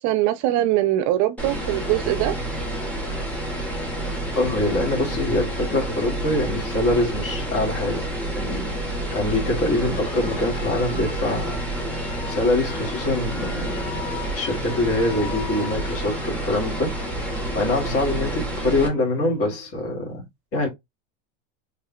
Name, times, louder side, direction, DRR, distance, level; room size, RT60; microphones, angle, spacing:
voice 1, 0.0-2.3, right 14 dB, 50° right, 0.6 m, -22 dB
sound 1, 1.4-18.9, right 1 dB, 5° left, 1.5 m, -29 dB
voice 2, 4.3-8.7 9.1-11.6 12.3-14.0 14.3-16.9 17.5-20.7, left 2 dB, 40° left, 2.1 m, -24 dB
Alarm, 8.5-19.5, left 7 dB, 65° left, 1.9 m, -41 dB
3.6 x 3.4 x 2.2 m
supercardioid pair, 120°, 37 cm